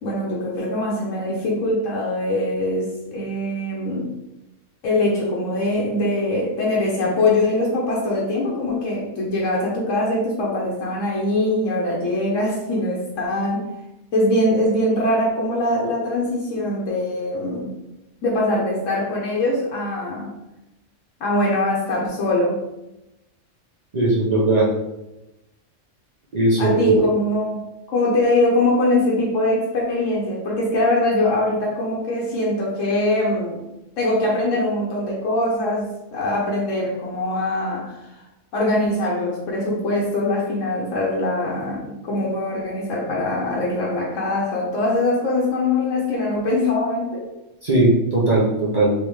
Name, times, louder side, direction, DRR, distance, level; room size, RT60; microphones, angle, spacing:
voice 1, 0.0-4.1 4.8-13.7 14.1-17.7 18.2-20.3 21.2-22.6 26.6-33.6 34.0-38.2 38.5-47.2, left 1 dB, 85° left, -4 dB, 1.1 m, -22 dB
voice 2, 23.9-24.7 26.3-27.0 47.6-48.9, right 2 dB, 40° right, -7 dB, 0.8 m, -18 dB
3.4 x 3.0 x 3.0 m, 0.95 s
omnidirectional pair, 1.3 m